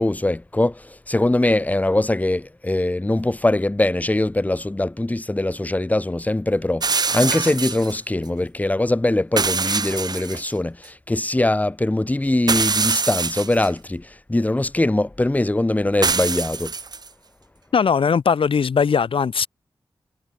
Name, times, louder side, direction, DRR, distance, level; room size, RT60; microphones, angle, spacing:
voice 1, 0.0-16.7, left 1 dB, 15° left, 6.8 m, -22 dB
sound 1, 6.8-8.0 9.4-10.5 10.8-10.9 12.5-13.7 16.0-17.1, right 4 dB, 50° right, 1.8 m, -24 dB
voice 2, 17.7-19.5, left 6 dB, 80° left, 1.5 m, -19 dB
wide cardioid pair, 140°, 9 cm